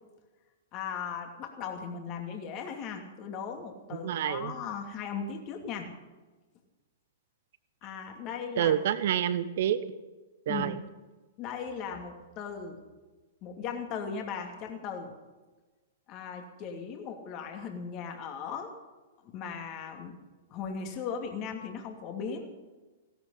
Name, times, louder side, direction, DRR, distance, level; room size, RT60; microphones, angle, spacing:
voice 1, 0.7-5.9 7.8-8.7 10.5-10.8 11.4-12.8 13.4-15.1 16.1-18.7 19.2-20.2 20.5-22.5, left 6 dB, 35° left, 3 dB, 2.6 m, -38 dB
voice 2, 4.0-4.5 8.6-9.8 10.5-10.8, right 10 dB, 55° right, 14 dB, 1.1 m, -27 dB
17.0 x 13.0 x 5.8 m, 1.2 s
figure-of-eight pair, 110°, 0 cm